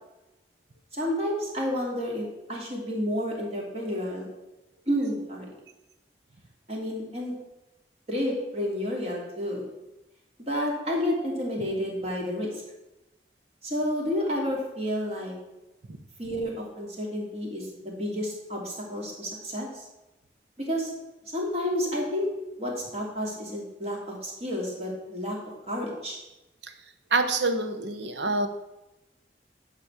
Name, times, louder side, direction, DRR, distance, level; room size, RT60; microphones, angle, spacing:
voice 1, 0.9-4.3 4.9-5.5 6.7-7.3 8.1-9.6 10.4-12.6 13.6-15.3 16.2-19.8 20.6-20.9 21.3-22.3 22.6-25.4 25.7-26.2, equal, 35° right, -2 dB, 2.8 m, -30 dB
voice 2, 27.1-28.5, right 3 dB, 85° right, 7 dB, 1.0 m, -26 dB
11.0 x 4.2 x 7.2 m, 0.98 s
head